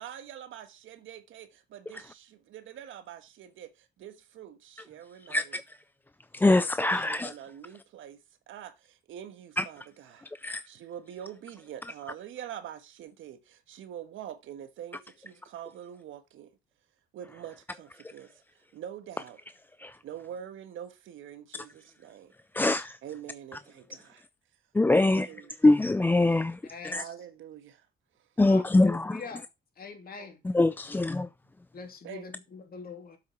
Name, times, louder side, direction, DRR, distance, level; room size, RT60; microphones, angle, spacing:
voice 1, 0.0-5.5 6.8-9.8 10.1-16.6 17.1-18.4 18.7-19.4 20.0-22.3 23.0-24.2 24.9-25.5 26.9-27.9 30.2-30.3 31.2-31.3 32.0-32.2, right 10 dB, 80° right, 1.4 m, -45 dB
voice 2, 5.3-5.8 6.3-7.3 9.6-9.7 10.4-10.6 19.8-20.0 22.5-23.0 24.7-25.3 25.6-27.0 28.4-29.2 30.4-31.3, left 2 dB, 10° left, 0.3 m, -24 dB
voice 3, 26.7-27.1 28.5-29.4 29.8-30.4 31.7-33.2, left 5 dB, 50° left, 2.7 m, -43 dB
7.6 x 6.0 x 4.5 m
cardioid pair, 90°, 20 cm